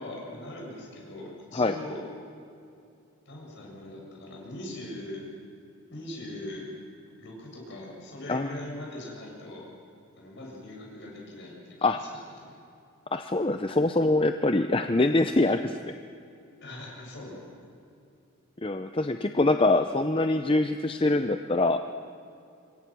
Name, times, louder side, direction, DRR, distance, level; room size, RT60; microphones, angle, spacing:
voice 1, 0.0-2.0 3.3-5.2 5.9-6.7 7.2-9.7 10.2-12.1 12.4-12.5 16.6-17.5, left 1 dB, 55° left, -2 dB, 7.7 m, -41 dB
voice 2, 13.1-16.0 18.6-21.8, left 2 dB, 25° left, 8 dB, 0.6 m, -24 dB
26.5 x 23.0 x 6.2 m, 2.6 s
head